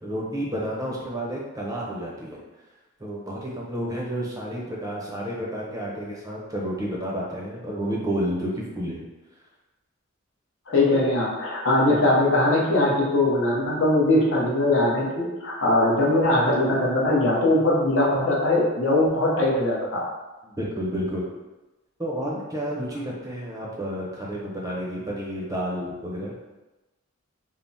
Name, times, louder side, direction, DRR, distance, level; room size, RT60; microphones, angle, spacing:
voice 1, 0.0-2.4 3.0-9.1 20.4-21.3 22.0-26.3, equal, 15° right, -4 dB, 0.5 m, -30 dB
voice 2, 10.7-20.1, left 1 dB, 65° left, -3 dB, 0.7 m, -21 dB
3.2 x 2.0 x 2.6 m, 1.1 s
head